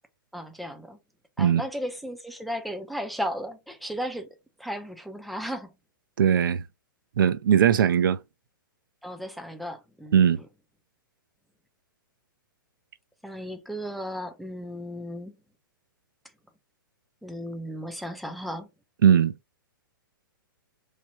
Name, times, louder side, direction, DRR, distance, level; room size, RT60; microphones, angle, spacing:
voice 1, 0.3-1.0 1.4-4.3 4.6-5.7 9.0-10.3 13.2-15.3 17.2-18.7, equal, ahead, 0.4 m, -35 dB
voice 2, 6.2-6.6 7.2-8.2 10.1-10.4 19.0-19.3, right 8 dB, 70° right, 0.4 m, -19 dB
3.2 x 2.2 x 2.8 m
figure-of-eight pair, 115°, 12 cm